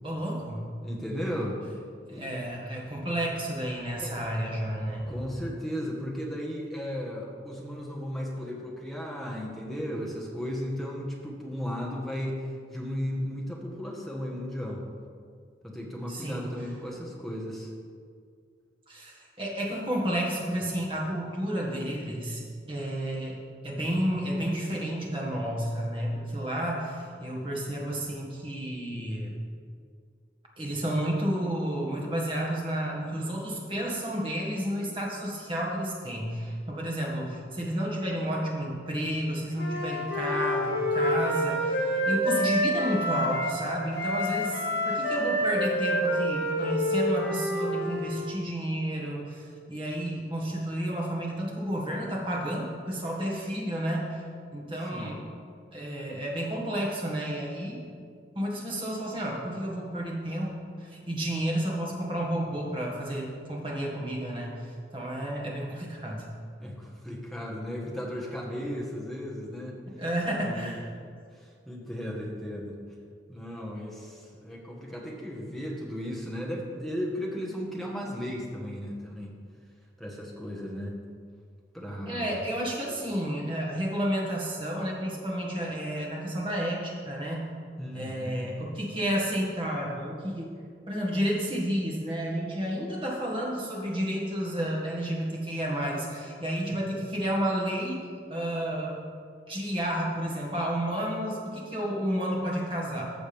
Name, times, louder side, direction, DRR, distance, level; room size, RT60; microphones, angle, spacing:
voice 1, 0.0-0.7 2.1-5.1 16.1-16.5 18.9-22.4 22.7-29.4 30.6-41.8 42.0-54.2 54.5-55.2 55.7-57.8 58.4-66.3 69.9-70.8 82.1-87.5 87.9-90.5 90.9-98.0 98.3-99.0 99.5-103.0, equal, 30° right, -3 dB, 1.8 m, -31 dB
voice 2, 0.8-1.6 2.1-2.3 4.0-4.2 5.1-12.5 12.7-14.8 15.6-17.7 54.9-55.2 66.6-69.8 70.4-70.8 71.4-72.8 73.3-79.3 80.0-81.0 81.7-82.4 87.8-88.5 96.9-97.0, equal, ahead, -3 dB, 1.3 m, -35 dB
Wind instrument woodwind instrument, 39.5-43.6 43.9-48.2, equal, 90° left, 2.1 m, -28 dB
14.5 x 6.3 x 3.5 m, 2.1 s
head